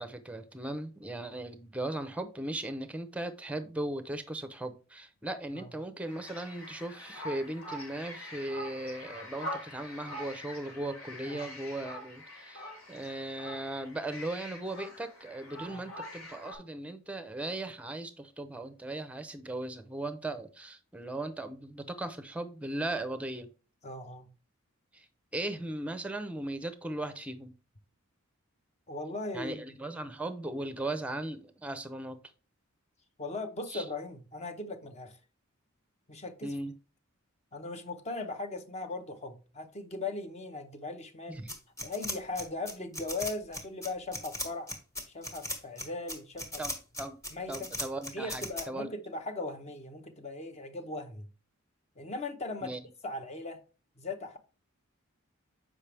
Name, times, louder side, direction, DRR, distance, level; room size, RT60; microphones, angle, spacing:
voice 1, 0.0-23.5 24.9-25.1 25.3-27.5 29.3-32.2 33.7-33.8 36.4-36.7 41.3-41.5 46.6-47.2 47.5-48.9 52.6-52.8, right 1 dB, 5° right, 0.6 m, -38 dB
sound 1, 6.0-16.6, left 1 dB, 85° left, 2.9 m, -44 dB
voice 2, 23.8-24.3 28.9-29.6 33.2-35.2 36.1-36.5 37.5-41.4 41.8-44.7 45.1-46.6 47.3-47.7 48.1-51.3 52.0-52.7 53.0-53.6 54.0-54.4, left 2 dB, 30° left, 0.7 m, -38 dB
sound 2, 41.5-48.6, left 1 dB, 15° left, 1.2 m, -37 dB
7.1 x 5.0 x 3.3 m
head